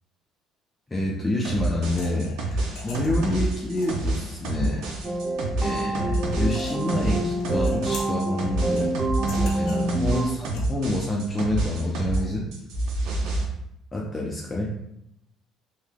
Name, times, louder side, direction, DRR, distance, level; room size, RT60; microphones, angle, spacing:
voice 1, 0.9-4.9 5.6-8.9 9.4-12.5 13.9-14.7, left 1 dB, 20° left, -3 dB, 0.5 m, -28 dB
sound 1, 1.4-12.2 12.5-13.4, right 2 dB, 75° right, 0.6 m, -28 dB
sound 2, 1.8-12.3, left 2 dB, 75° left, 0.7 m, -45 dB
sound 3, 5.0-10.2, right 2 dB, 30° right, 0.5 m, -27 dB
3.3 x 2.7 x 2.2 m, 0.80 s
supercardioid pair, 90°, 0 cm